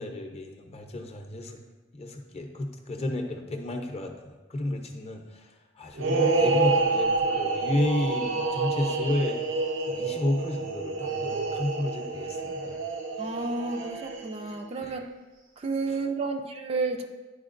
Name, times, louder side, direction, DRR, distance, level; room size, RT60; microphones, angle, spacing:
voice 1, 0.0-1.6 1.9-9.4 9.8-12.8 14.8-14.9 15.9-16.0, left 1 dB, 35° left, 3 dB, 0.6 m, -32 dB
sound 1, 6.0-14.5, right 3 dB, 90° right, 0.7 m, -28 dB
voice 2, 13.2-15.1 15.6-17.1, right 3 dB, 30° right, 4 dB, 0.4 m, -31 dB
9.9 x 4.4 x 2.5 m, 1.2 s
head